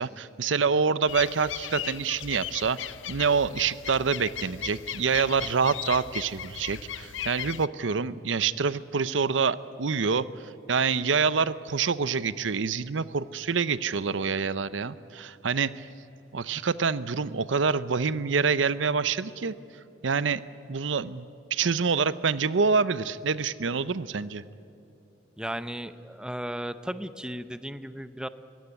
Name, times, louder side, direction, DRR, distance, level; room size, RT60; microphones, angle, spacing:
voice 1, 0.0-2.8 3.1-10.3 10.7-15.9 16.3-19.5 20.0-20.4 20.7-24.4, right 5 dB, 80° right, 16 dB, 0.7 m, -26 dB
sound 1, 1.1-7.7, left 10 dB, 85° left, 0.6 m, -37 dB
voice 2, 25.4-28.3, right 1 dB, 5° right, 13 dB, 0.6 m, -35 dB
22.5 x 16.5 x 9.9 m, 2.9 s
head